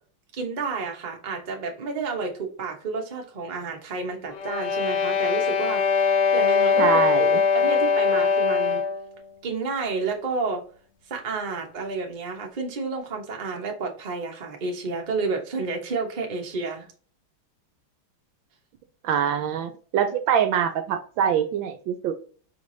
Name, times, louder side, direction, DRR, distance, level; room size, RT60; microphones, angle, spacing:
voice 1, 0.3-6.9 7.5-8.8 9.4-10.6 11.1-16.9, right 4 dB, 40° right, 1 dB, 0.6 m, -30 dB
sound 1, 4.3-9.1, left 5 dB, 65° left, 1.4 m, -22 dB
voice 2, 6.8-7.4 19.0-22.1, right 8 dB, 75° right, 8 dB, 1.2 m, -24 dB
4.9 x 3.3 x 2.6 m, 0.42 s
omnidirectional pair, 2.3 m